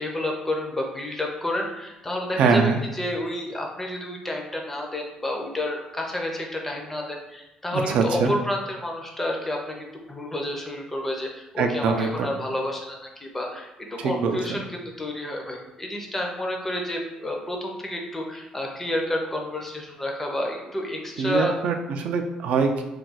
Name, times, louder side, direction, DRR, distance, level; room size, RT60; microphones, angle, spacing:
voice 1, 0.0-21.5, left 1 dB, 10° left, 0 dB, 0.4 m, -30 dB
voice 2, 2.4-2.8 7.7-8.3 11.6-12.3 14.0-14.6 21.2-22.8, right 5 dB, 65° right, 5 dB, 0.3 m, -23 dB
2.4 x 2.2 x 3.9 m, 0.99 s
cardioid pair, 145°, 2 cm